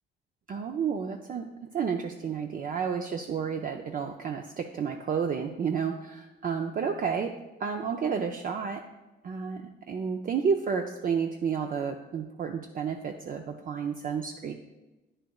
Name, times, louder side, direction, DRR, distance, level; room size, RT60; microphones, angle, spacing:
voice 1, 0.5-7.3 7.6-8.8 9.2-14.5, right 6 dB, 45° right, 4 dB, 0.5 m, -31 dB
9.2 x 6.6 x 2.3 m, 1.1 s
cardioid pair, 90°, 20 cm